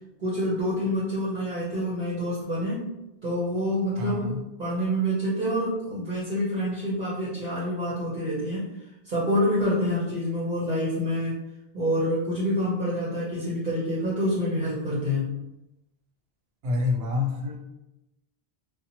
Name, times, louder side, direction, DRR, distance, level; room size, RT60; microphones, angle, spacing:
voice 1, 0.2-2.9 3.2-8.7 9.0-11.4 11.7-15.4, equal, 50° right, -9 dB, 0.9 m, -27 dB
voice 2, 4.0-4.4 16.6-17.6, left 3 dB, 85° right, 1 dB, 0.8 m, -27 dB
2.8 x 2.2 x 2.7 m, 0.94 s
omnidirectional pair, 1.0 m